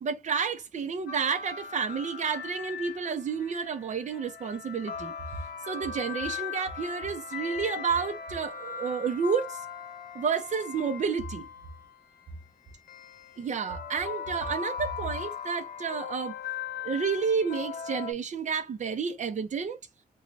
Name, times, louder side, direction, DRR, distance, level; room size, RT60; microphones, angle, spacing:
voice 1, 0.0-5.1 5.7-9.6 10.1-11.5 13.4-16.4 16.8-19.8, right 6 dB, 50° right, 0.7 m, -30 dB
sound 1, 1.1-12.0 12.9-18.1, left 7 dB, 80° left, 1.0 m, -39 dB
3.1 x 2.3 x 4.0 m
wide cardioid pair, 165°, 15 cm